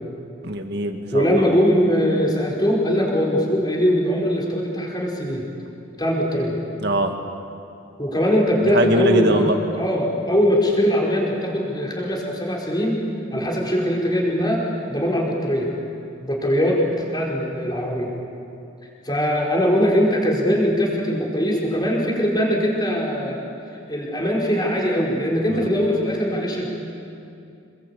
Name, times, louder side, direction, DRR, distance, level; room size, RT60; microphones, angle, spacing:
voice 1, 0.4-1.5 6.8-7.1 8.6-9.6 25.5-25.7, right 1 dB, 50° right, 4 dB, 2.2 m, -22 dB
voice 2, 1.1-5.5 6.0-6.6 8.0-13.0 13.3-14.6 14.9-15.7 16.2-18.1 19.0-23.4 23.9-26.7, equal, 20° left, -2 dB, 4.9 m, -21 dB
27.5 x 21.5 x 8.6 m, 2.6 s
head